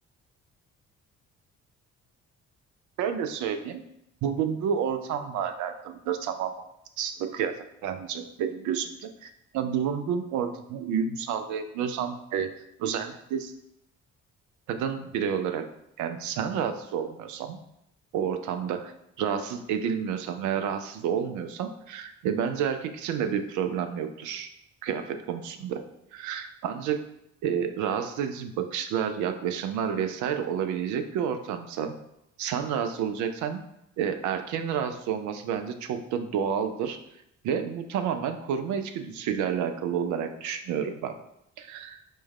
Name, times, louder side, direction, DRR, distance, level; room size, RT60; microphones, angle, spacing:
voice 1, 3.0-3.8 4.2-6.5 7.0-12.5 12.8-13.5 14.7-15.6 16.0-17.6 18.1-24.5 24.8-25.8 26.1-27.1 27.4-31.9 32.4-33.6 34.0-37.0 37.4-41.2 41.6-42.0, right 8 dB, 50° right, 8 dB, 0.5 m, -30 dB
4.5 x 2.2 x 3.2 m, 0.80 s
figure-of-eight pair, 45°, 39 cm